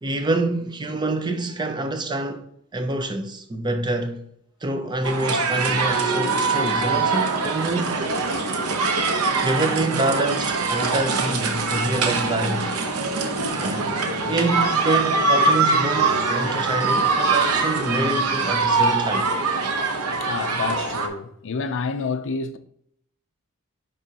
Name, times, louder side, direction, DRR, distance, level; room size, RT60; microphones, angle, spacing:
voice 1, 0.0-2.4 2.7-4.2 4.6-8.1 9.4-12.7 13.6-14.0 14.3-19.3, right 2 dB, 20° right, 0.5 m, -26 dB
sound 1, 5.0-21.1, right 3 dB, 90° right, 0.8 m, -23 dB
voice 2, 20.2-22.6, left 5 dB, 60° left, 0.4 m, -28 dB
9.9 x 3.4 x 2.8 m
head